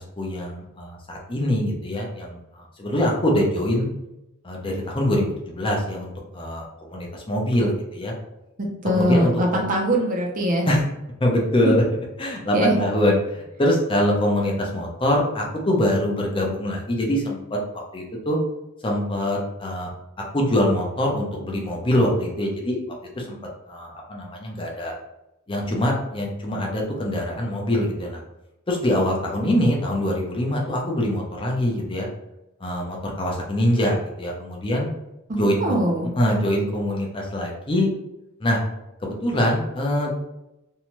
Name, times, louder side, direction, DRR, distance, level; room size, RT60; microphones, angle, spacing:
voice 1, 0.2-3.9 4.4-8.1 8.9-9.6 10.7-10.8 11.2-11.8 12.2-17.6 17.9-18.4 18.8-19.9 20.3-22.8 23.2-23.4 23.7-24.9 25.5-28.2 28.7-32.1 32.6-34.9 35.4-35.8 36.2-37.9 38.4-38.6 39.0-40.1, left 1 dB, 25° left, -1 dB, 0.6 m, -23 dB
voice 2, 8.8-10.7 11.7-11.8 12.5-12.8 35.3-36.1, equal, 40° right, 0 dB, 0.6 m, -22 dB
2.7 x 2.2 x 3.0 m, 0.89 s
head